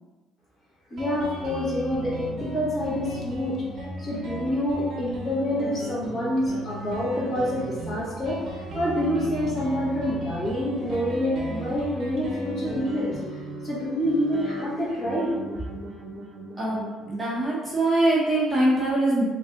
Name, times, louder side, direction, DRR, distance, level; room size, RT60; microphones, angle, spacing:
voice 1, 0.9-3.6 4.0-13.1 13.6-15.3, equal, 35° left, -6 dB, 1.4 m, -27 dB
Guitar, 1.0-18.2, right 1 dB, 45° right, 0.8 m, -36 dB
voice 2, 16.6-19.2, right 1 dB, 10° right, -7 dB, 0.8 m, -23 dB
3.9 x 2.7 x 3.6 m, 1.2 s
cardioid pair, 140°, 0 cm